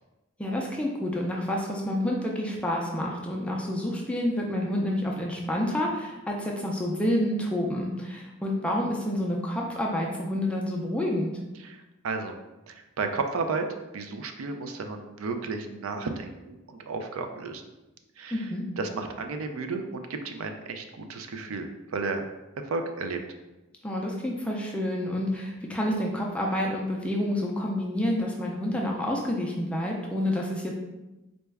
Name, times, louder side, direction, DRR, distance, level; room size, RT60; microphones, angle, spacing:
voice 1, 0.4-11.3 18.3-18.6 23.8-30.8, left 1 dB, 5° left, -2 dB, 0.3 m, -28 dB
voice 2, 11.6-12.4 12.7-13.7 13.9-17.6 18.2-18.5 18.8-22.2 22.6-23.2, right 4 dB, 80° right, 6 dB, 0.4 m, -33 dB
4.0 x 2.2 x 3.4 m, 1.0 s
head